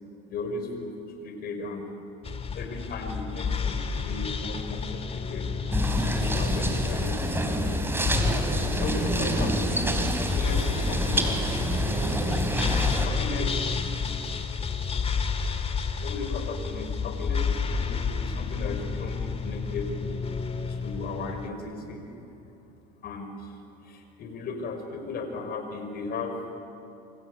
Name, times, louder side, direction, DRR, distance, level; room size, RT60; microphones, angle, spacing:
voice 1, 0.3-1.0 1.2-1.8 2.5-5.5 6.1-7.9 8.8-11.7 13.0-13.7 16.0-19.9 20.7-22.0 23.0-23.6 23.8-26.4, left 3 dB, 50° left, 5 dB, 5.6 m, -36 dB
sound 1, 2.2-21.5, left 5 dB, 30° left, 2.2 m, -30 dB
sound 2, 5.7-13.1, right 1 dB, 10° right, 3.9 m, -27 dB
27.5 x 25.0 x 8.3 m, 2.7 s
supercardioid pair, 95°, 20 cm